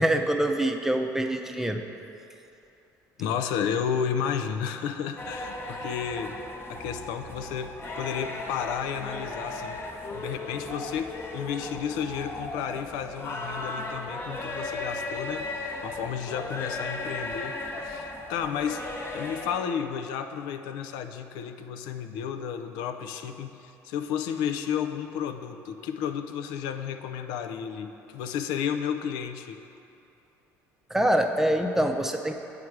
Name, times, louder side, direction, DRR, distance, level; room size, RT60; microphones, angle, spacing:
voice 1, 0.0-1.8 30.9-32.3, right 1 dB, 5° right, 4 dB, 0.6 m, -25 dB
voice 2, 3.2-6.3 6.7-9.8 10.1-18.8 19.1-29.6, left 8 dB, 75° left, 7 dB, 0.5 m, -32 dB
sound 1, 5.2-19.5, left 2 dB, 35° left, 1.0 m, -36 dB
8.5 x 5.0 x 4.7 m, 2.9 s
supercardioid pair, 75°, 7 cm